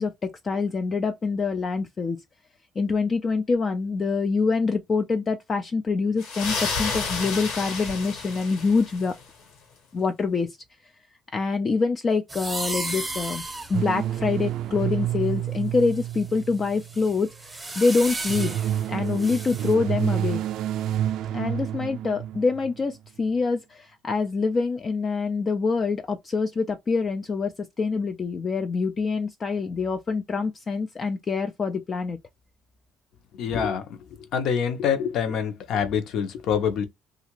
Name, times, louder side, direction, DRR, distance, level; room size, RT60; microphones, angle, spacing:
voice 1, 0.0-2.2 2.8-9.1 9.9-10.6 11.3-13.4 13.7-18.5 18.9-20.4 21.3-32.2, left 4 dB, 30° left, 0.4 m, -25 dB
sound 1, 6.2-9.2, left 4 dB, 80° left, 1.4 m, -31 dB
sound 2, 12.3-15.2 15.8-19.7, right 2 dB, 10° right, 0.8 m, -35 dB
sound 3, 13.7-17.1 18.0-22.8, right 11 dB, 70° right, 0.3 m, -29 dB
voice 2, 33.4-33.8 34.3-36.8, left 7 dB, 65° left, 0.8 m, -25 dB
2.7 x 2.4 x 3.0 m
cardioid pair, 140°, 0 cm